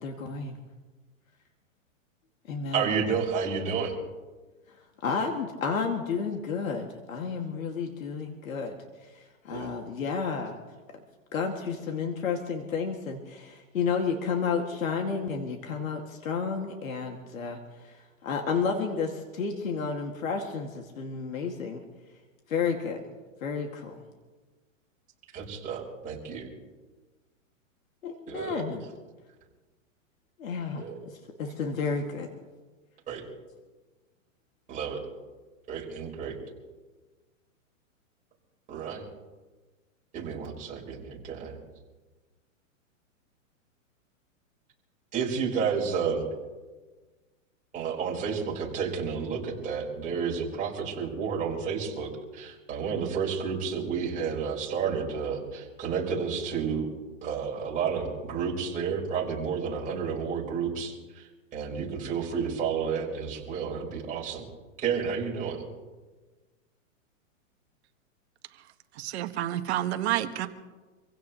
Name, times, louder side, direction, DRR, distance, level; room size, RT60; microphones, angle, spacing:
voice 1, 0.0-0.6 2.5-3.0 5.0-9.1 9.4-10.6 11.3-21.8 22.5-23.0 23.4-24.0 28.0-28.8 30.4-32.3, left 5 dB, 90° left, 2 dB, 2.2 m, -31 dB
voice 2, 2.7-4.0 9.5-9.7 25.3-26.5 28.3-28.6 30.8-31.0 33.1-33.2 34.7-35.0 35.7-36.4 38.7-39.0 40.1-41.6 45.1-46.3 47.7-56.9 57.2-64.5 64.8-65.7, right 6 dB, 20° right, -4 dB, 4.7 m, -31 dB
voice 3, 69.0-70.5, right 13 dB, 55° right, 8 dB, 1.5 m, -29 dB
26.0 x 16.5 x 3.1 m, 1.3 s
hypercardioid pair, 150°, 40 cm